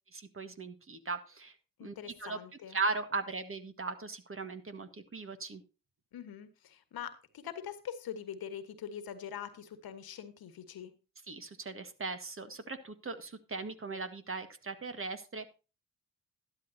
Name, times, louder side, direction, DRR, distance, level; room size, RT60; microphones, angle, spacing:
voice 1, 0.1-1.5 1.8-1.9 2.2-2.4 2.7-5.6 11.3-15.5, right 3 dB, 35° right, 9 dB, 1.7 m, -38 dB
voice 2, 1.8-2.8 6.1-10.9, left 9 dB, 65° left, 11 dB, 1.6 m, -43 dB
12.0 x 11.5 x 2.8 m, 0.32 s
hypercardioid pair, 50°, 40 cm